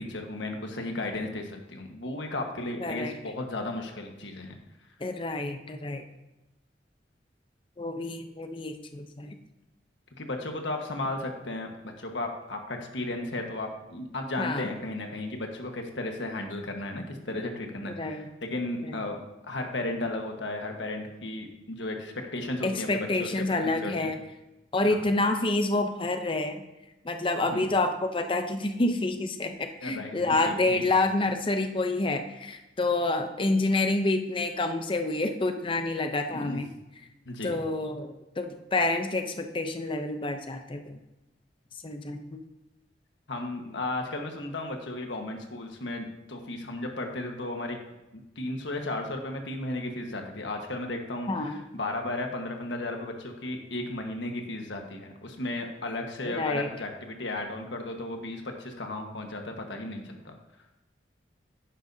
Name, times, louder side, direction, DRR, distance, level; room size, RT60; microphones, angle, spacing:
voice 1, 0.0-4.6 10.2-24.1 24.8-25.0 27.5-27.7 29.8-30.8 36.3-36.6 37.2-37.6 43.3-47.8 48.1-60.3, left 2 dB, 85° left, 3 dB, 1.4 m, -35 dB
voice 2, 2.8-3.1 5.0-6.1 7.8-9.4 14.4-14.7 17.8-18.2 18.8-19.0 22.6-24.2 24.7-26.6 27.0-36.7 37.4-41.0 41.8-42.4 51.3-51.6 56.2-56.7, left 2 dB, 30° left, 6 dB, 0.6 m, -28 dB
10.5 x 10.0 x 2.8 m, 1.0 s
head